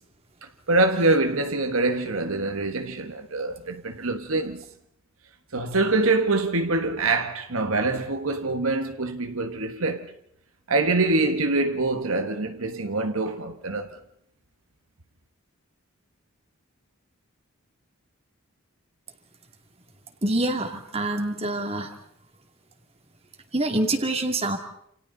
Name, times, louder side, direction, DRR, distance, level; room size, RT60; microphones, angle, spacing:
voice 1, 0.7-4.6 5.5-10.1 10.7-13.9, right 2 dB, 70° right, 1.4 m, -24 dB
voice 2, 20.2-21.9 23.5-24.6, right 2 dB, 25° right, 2.5 m, -26 dB
29.0 x 28.5 x 4.0 m
head